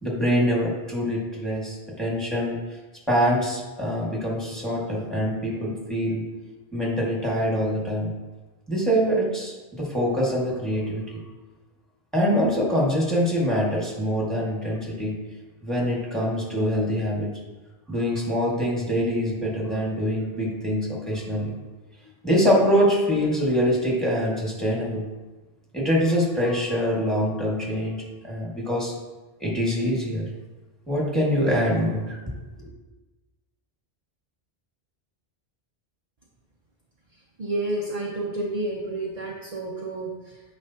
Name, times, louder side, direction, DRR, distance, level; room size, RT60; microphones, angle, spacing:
voice 1, 0.0-2.6 3.1-6.2 6.7-8.1 8.7-11.2 12.1-15.1 15.6-17.3 17.9-21.6 22.2-25.0 25.7-28.0 28.2-28.9 29.4-30.2 30.9-32.7, equal, ahead, -4 dB, 1.8 m, -24 dB
voice 2, 37.1-40.4, right 2 dB, 40° right, -2 dB, 0.8 m, -30 dB
9.9 x 5.1 x 2.8 m, 1.2 s
omnidirectional pair, 1.1 m